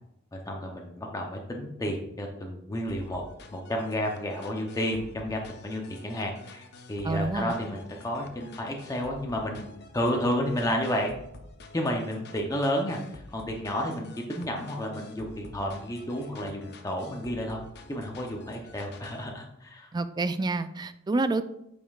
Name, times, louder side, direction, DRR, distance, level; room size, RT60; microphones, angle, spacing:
voice 1, 0.3-3.2 3.5-6.6 6.9-9.7 9.9-11.1 11.7-17.6 17.9-19.9, equal, 15° left, 1 dB, 0.6 m, -31 dB
sound 1, 2.9-19.3, left 3 dB, 55° left, 0.7 m, -49 dB
voice 2, 7.0-7.5 19.9-21.4, right 3 dB, 20° right, 12 dB, 0.3 m, -28 dB
8.6 x 5.2 x 2.4 m, 0.83 s
head